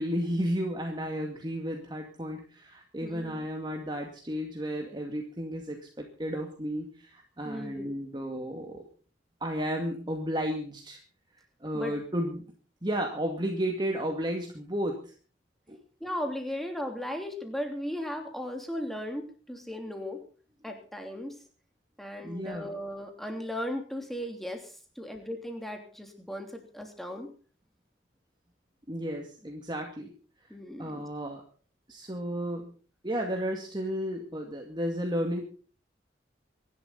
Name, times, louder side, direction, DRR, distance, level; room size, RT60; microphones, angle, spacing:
voice 1, 0.0-8.8 9.4-11.0 11.6-12.4 12.8-15.1 15.7-15.8 22.2-22.7 28.9-30.1 30.8-31.4 31.9-32.7 33.0-35.4, equal, 25° right, 2 dB, 2.3 m, -33 dB
voice 2, 3.0-3.5 7.4-7.9 11.7-12.0 16.0-20.2 20.6-21.3 22.0-27.3 30.5-31.0, left 1 dB, ahead, 4 dB, 3.1 m, -36 dB
25.5 x 11.5 x 4.1 m, 0.40 s
head